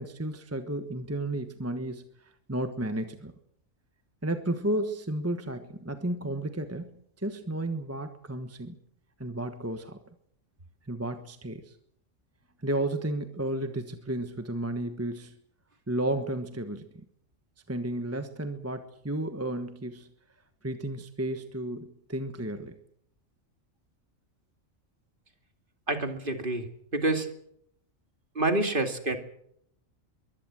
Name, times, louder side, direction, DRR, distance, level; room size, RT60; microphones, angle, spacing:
voice 1, 0.0-3.3 4.2-8.8 9.2-10.0 10.8-11.7 12.6-15.3 15.9-17.0 17.7-20.1 20.6-22.7, right 1 dB, 10° right, 8 dB, 1.2 m, -33 dB
voice 2, 25.9-27.3 28.3-29.2, right 2 dB, 40° right, 6 dB, 2.5 m, -28 dB
23.0 x 16.5 x 7.6 m, 0.71 s
omnidirectional pair, 1.4 m